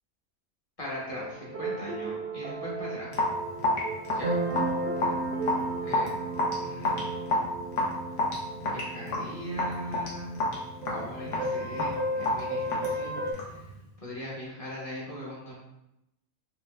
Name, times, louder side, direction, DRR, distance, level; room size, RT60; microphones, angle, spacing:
voice 1, 0.8-3.2 4.1-4.4 5.0-5.1 5.8-6.1 6.6-7.1 8.6-10.4 10.9-13.6 14.0-15.6, equal, 30° left, -6 dB, 0.8 m, -40 dB
sound 1, 1.1-13.3, right 2 dB, 65° right, 0.6 m, -34 dB
Raindrop / Drip, 3.1-13.6, left 2 dB, 65° left, 1.1 m, -30 dB
4.5 x 2.1 x 2.3 m, 0.87 s
omnidirectional pair, 1.5 m